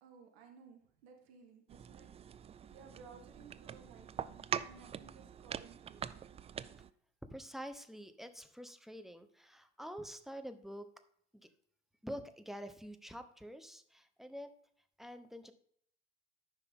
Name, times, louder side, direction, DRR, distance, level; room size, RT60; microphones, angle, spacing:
voice 1, 0.0-2.1 2.7-6.1, right 5 dB, 70° right, 3 dB, 1.6 m, -58 dB
sound 1, 1.7-6.9, right 8 dB, 20° right, 0.3 m, -44 dB
voice 2, 7.3-10.9 11.3-11.5 12.0-14.5 15.0-15.5, equal, ahead, 8 dB, 0.9 m, -47 dB
13.5 x 5.6 x 3.7 m, 0.64 s
hypercardioid pair, 75°, 34 cm